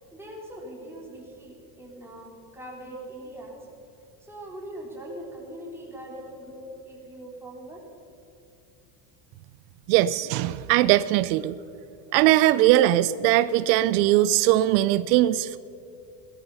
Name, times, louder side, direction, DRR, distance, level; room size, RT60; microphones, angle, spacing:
voice 1, 0.1-3.7 4.2-7.8, right 1 dB, 5° right, -3 dB, 3.7 m, -41 dB
voice 2, 9.9-11.6 12.1-15.6, right 14 dB, 80° right, 16 dB, 0.6 m, -20 dB
18.5 x 13.0 x 5.6 m, 2.7 s
supercardioid pair, 130°, 49 cm